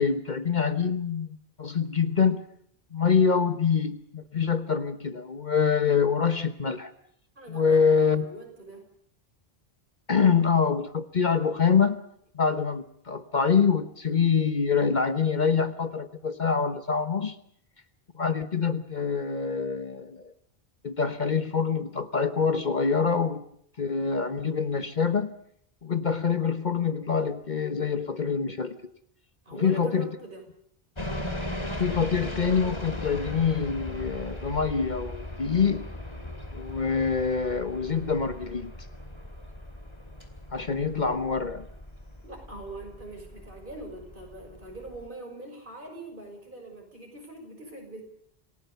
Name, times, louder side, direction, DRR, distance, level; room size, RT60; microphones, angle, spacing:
voice 1, 0.0-2.4 2.9-6.9 7.5-8.2 10.1-12.0 12.3-17.4 18.1-20.3 20.8-23.4 23.8-25.4 25.8-28.9 29.5-30.2 31.8-35.9 36.5-38.7 40.5-41.7, left 6 dB, 50° left, 10 dB, 1.2 m, -25 dB
voice 2, 7.4-8.9 29.4-30.4 42.2-48.0, right 2 dB, 55° right, 2 dB, 6.3 m, -43 dB
sound 1, 31.0-45.1, left 1 dB, 25° left, 2.5 m, -38 dB
27.5 x 17.5 x 6.9 m, 0.68 s
omnidirectional pair, 1.0 m